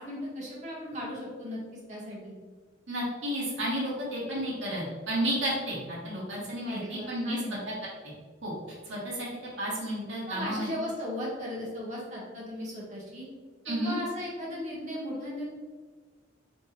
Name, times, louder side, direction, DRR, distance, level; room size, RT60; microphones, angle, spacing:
voice 1, 0.0-2.4 6.7-7.6 10.3-13.3 13.7-15.4, left 1 dB, 40° right, -4 dB, 1.2 m, -37 dB
voice 2, 2.9-7.4 7.6-7.7 8.4-8.5 8.8-9.3 9.6-10.7 13.6-14.0, equal, 80° right, -6 dB, 1.4 m, -32 dB
3.4 x 3.1 x 4.2 m, 1.4 s
head